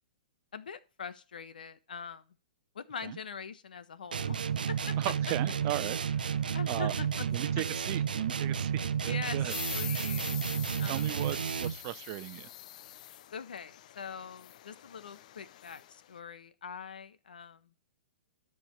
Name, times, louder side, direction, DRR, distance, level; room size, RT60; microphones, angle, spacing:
voice 1, 0.5-2.2 2.7-4.4 4.7-4.9 6.5-7.3 7.5-7.6 9.0-10.4 10.8-11.1 13.3-17.7, left 6 dB, 75° left, 1.2 m, -43 dB
sound 1, 4.1-11.9, right 7 dB, 80° right, 0.7 m, -32 dB
voice 2, 5.0-6.3 6.7-6.9 7.3-9.5 10.8-12.5, right 18 dB, 40° right, 0.7 m, -37 dB
sound 2, 9.5-16.0, left 12 dB, 55° left, 0.6 m, -44 dB
12.5 x 5.3 x 6.7 m
hypercardioid pair, 125°, 5 cm